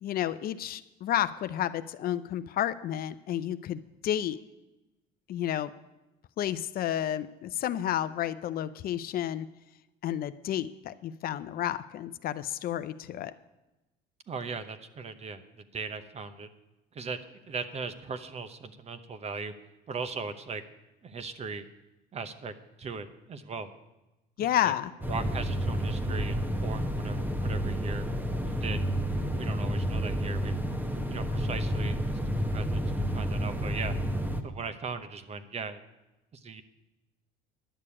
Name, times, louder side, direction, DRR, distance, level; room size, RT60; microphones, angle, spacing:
voice 1, 0.0-4.4 5.3-5.7 6.4-9.5 10.0-13.3 24.4-24.9, left 11 dB, 50° left, 13 dB, 0.5 m, -31 dB
voice 2, 14.3-16.5 16.9-19.5 19.9-20.6 21.0-21.6 22.1-23.7 24.6-24.7 25.1-26.4 26.6-28.1 28.5-29.0 29.3-30.5 31.1-34.0 34.4-35.8 36.3-36.6, right 4 dB, 35° right, 11 dB, 0.9 m, -38 dB
sound 1, 25.0-34.4, equal, 10° right, 1.0 m, -30 dB
11.0 x 6.7 x 8.6 m, 1.0 s
cardioid pair, 110°, 20 cm